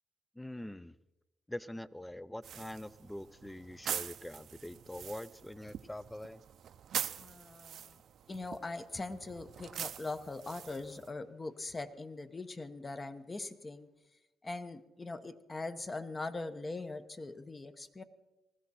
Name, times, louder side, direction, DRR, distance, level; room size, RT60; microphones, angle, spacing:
voice 1, 0.4-1.0 1.5-6.4, left 1 dB, 5° left, 18 dB, 0.5 m, -44 dB
sound 1, 2.4-11.1, right 9 dB, 65° right, 0.6 m, -43 dB
voice 2, 7.2-8.0 8.3-13.9 14.4-18.0, left 3 dB, 25° left, 10 dB, 1.0 m, -41 dB
19.5 x 14.5 x 4.2 m, 1.0 s
cardioid pair, 80°, 0 cm